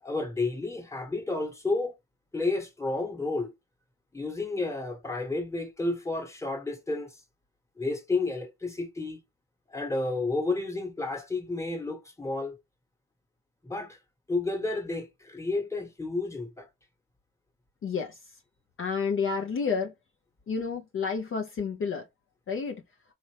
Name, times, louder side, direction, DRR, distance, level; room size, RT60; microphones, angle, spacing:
voice 1, 0.0-1.9 2.3-3.5 4.1-7.2 7.8-9.2 9.7-12.6 13.6-14.0 14.3-16.7, left 3 dB, 10° left, 1.2 m, -31 dB
voice 2, 17.8-18.4 18.8-19.9 20.5-22.1 22.5-22.8, left 5 dB, 45° left, 0.6 m, -30 dB
4.3 x 2.5 x 3.2 m
cardioid pair, 90°, 30 cm